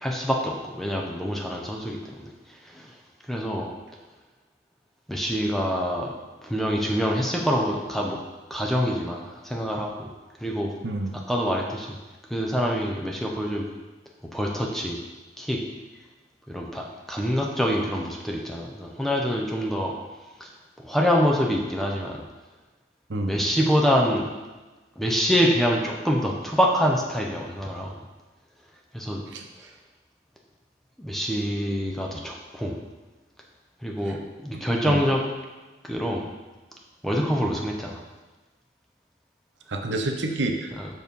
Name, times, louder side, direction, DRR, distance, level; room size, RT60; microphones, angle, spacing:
voice 1, 0.0-2.3 2.6-2.9 3.3-3.7 5.1-6.1 6.4-8.2 8.5-10.1 10.4-10.7 11.3-12.0 12.3-13.7 14.3-15.0 15.4-15.6 16.5-19.9 20.4-20.5 20.8-22.2 23.3-24.3 25.0-27.9 28.9-29.2 31.0-32.8 33.8-35.2 35.8-36.3 37.0-38.0 40.8-40.9, equal, ahead, -1 dB, 0.7 m, -25 dB
voice 2, 10.8-11.2 23.1-23.4 29.3-29.5 34.1-34.2 34.8-35.0 39.7-40.7, right 2 dB, 80° right, 4 dB, 0.8 m, -28 dB
6.2 x 4.6 x 5.3 m, 1.2 s
head